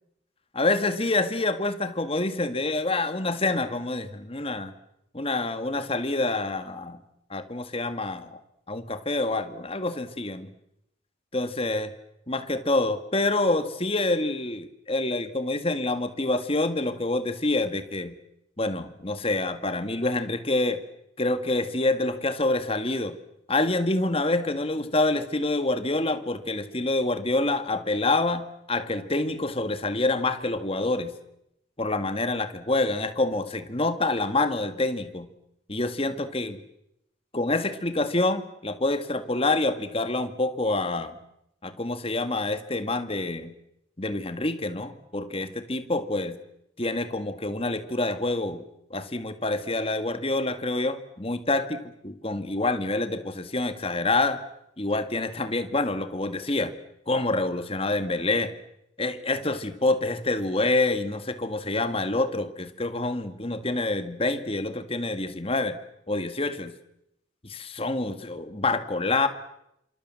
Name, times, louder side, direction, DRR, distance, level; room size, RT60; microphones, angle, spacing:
voice 1, 0.5-4.7 5.1-7.0 7.3-8.4 8.7-10.5 11.3-11.9 12.3-18.2 18.6-20.8 21.2-23.2 23.5-31.1 31.8-35.3 35.7-36.6 37.3-41.2 41.6-43.5 44.0-46.4 46.8-48.6 48.9-54.4 54.8-56.7 57.1-58.5 59.0-65.8 66.1-66.7 67.4-69.3, left 2 dB, 30° left, 10 dB, 1.8 m, -27 dB
29.0 x 26.5 x 7.6 m, 0.82 s
head